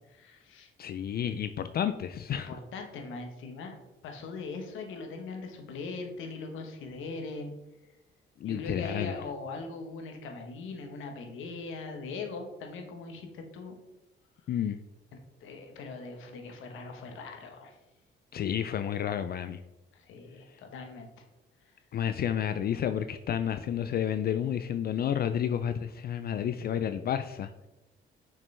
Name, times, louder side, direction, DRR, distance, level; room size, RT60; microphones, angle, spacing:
voice 1, 0.1-0.7 2.3-3.7 4.0-7.6 8.4-13.8 15.1-17.8 19.9-21.1, left 3 dB, 85° left, 4 dB, 1.2 m, -40 dB
voice 2, 0.8-2.5 8.4-9.1 14.5-14.8 18.3-19.6 21.9-27.5, left 9 dB, 50° left, 10 dB, 0.4 m, -30 dB
6.5 x 6.2 x 3.3 m, 0.98 s
cardioid pair, 90°, 20 cm